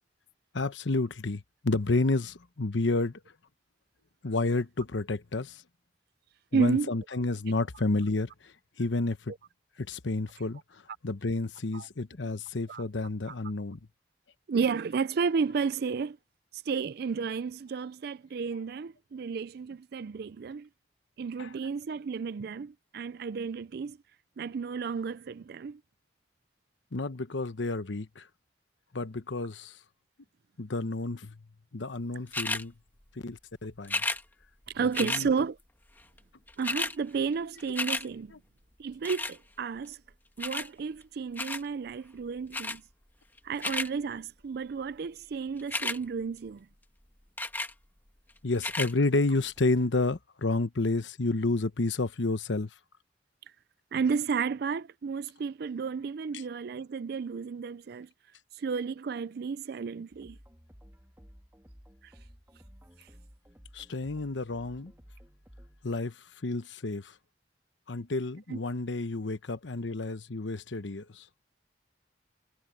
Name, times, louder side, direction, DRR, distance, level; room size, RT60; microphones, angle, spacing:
voice 1, 0.5-3.1 4.2-5.6 6.5-8.3 8.8-9.3 9.8-10.6 11.0-13.8 21.4-21.5 26.9-28.2 28.9-29.7 30.6-31.4 31.7-32.7 33.2-34.0 35.0-35.3 48.4-52.7 63.7-64.9 65.8-66.1 66.4-67.1 67.9-71.2, left 2 dB, 85° left, 1.0 m, -30 dB
voice 2, 6.5-6.9 11.7-11.9 12.7-12.8 13.3-13.4 14.5-16.2 16.5-20.7 21.2-24.0 24.4-25.8 34.7-35.6 36.6-38.3 38.8-40.0 40.4-42.8 43.4-46.7 53.9-58.1 58.5-60.4 62.0-62.1 63.0-63.1 68.5-68.6, right 5 dB, 60° right, 0.4 m, -32 dB
sound 1, 32.3-32.6 33.8-34.2 34.9-35.3 36.2-36.3 36.5-37.0 37.3-38.1 39.1-39.4 40.4-40.7 41.4-41.7 42.5-42.8 43.4-43.9 45.6-46.0 47.4-47.7 48.5-48.9 49.6-49.7, left 2 dB, 10° left, 1.4 m, -32 dB
sound 2, 60.1-66.0, equal, 15° right, 2.6 m, -55 dB
head